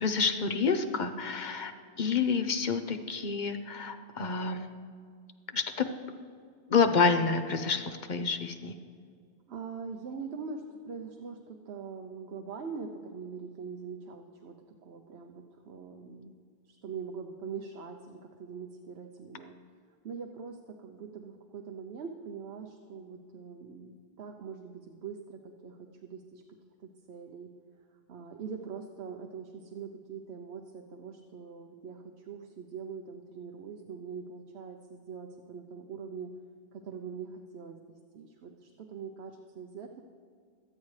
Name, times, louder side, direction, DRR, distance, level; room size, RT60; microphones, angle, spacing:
voice 1, 0.0-1.7 2.0-4.7 5.5-5.9 6.7-8.8, left 5 dB, 50° left, 7 dB, 0.8 m, -28 dB
voice 2, 9.5-14.6 14.8-16.4 16.6-19.5 20.0-26.4 26.8-27.5 28.1-36.3 36.7-37.8 38.1-40.0, right 5 dB, 75° right, 3 dB, 1.0 m, -43 dB
24.5 x 8.4 x 3.2 m, 2.1 s
omnidirectional pair, 1.1 m